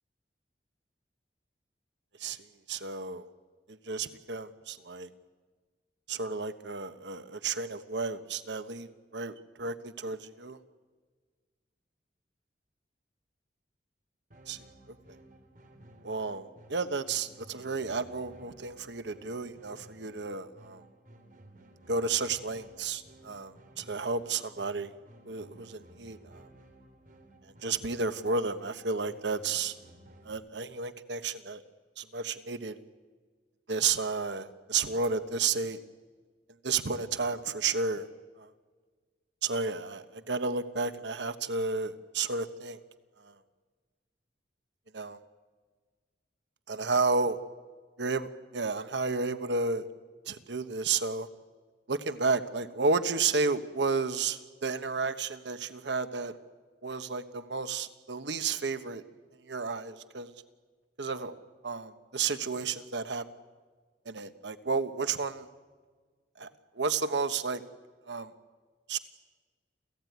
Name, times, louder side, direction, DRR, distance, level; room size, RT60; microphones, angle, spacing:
voice 1, 2.7-3.2 3.7-5.1 6.1-10.6 14.5-14.6 16.0-20.8 21.9-24.9 25.2-26.5 27.6-29.7 30.2-31.6 32.0-32.8 33.7-35.8 36.6-38.1 38.4-38.5 39.4-42.8 43.2-43.3 44.9-45.2 46.7-47.4 48.0-49.9 50.3-51.3 51.9-56.4 56.8-59.0 59.5-60.3 61.0-63.3 64.0-65.5 66.4-66.5 66.8-67.6 68.1-68.3 68.9-69.0, right 4 dB, 80° right, 11 dB, 1.2 m, -32 dB
sound 1, 14.3-30.3, right 1 dB, 50° right, 3.3 m, -56 dB
29.0 x 15.5 x 9.4 m, 1.5 s
head